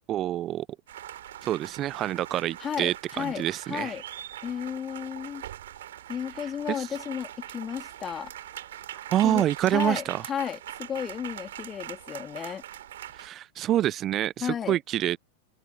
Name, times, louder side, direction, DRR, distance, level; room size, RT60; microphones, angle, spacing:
voice 1, 0.1-0.7 1.4-4.0 6.7-6.9 9.1-10.2 13.1-15.2, right 12 dB, 30° right, 0.5 m, -27 dB
sound 1, 0.9-13.3, right 12 dB, 60° right, 4.0 m, -42 dB
voice 2, 2.6-4.0 4.4-5.4 6.1-8.3 9.2-12.6 14.4-14.8, left 8 dB, 25° left, 2.8 m, -33 dB
figure-of-eight pair, 90°, 0 cm